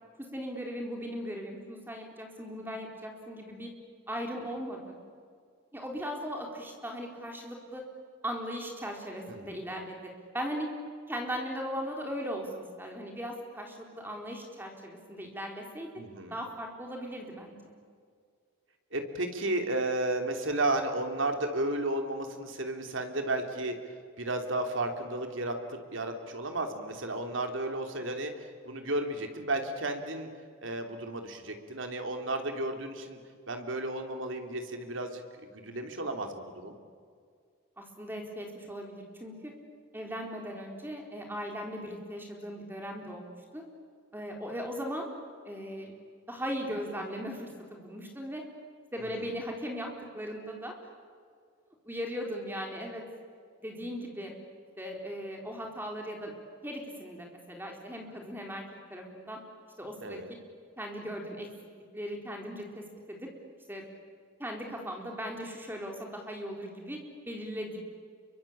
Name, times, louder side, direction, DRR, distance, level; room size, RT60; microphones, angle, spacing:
voice 1, 0.2-3.7 4.1-5.0 5.7-7.8 8.2-10.7 11.1-15.9 16.3-17.8 37.8-39.5 39.9-43.6 44.1-45.1 45.5-45.9 46.3-48.4 48.9-49.9 50.1-50.7 51.9-53.0 53.6-54.3 54.8-56.4 56.6-58.6 58.9-59.4 59.8-60.2 60.8-61.5 61.9-63.3 63.7-63.8 64.4-67.0 67.3-67.8, equal, 10° right, 1 dB, 4.2 m, -38 dB
voice 2, 16.0-16.3 18.9-23.8 24.2-30.3 30.6-33.2 33.5-35.2 35.5-36.8 49.0-49.3 60.0-60.3, right 2 dB, 70° right, 5 dB, 3.3 m, -33 dB
28.5 x 24.0 x 8.8 m, 2.1 s
head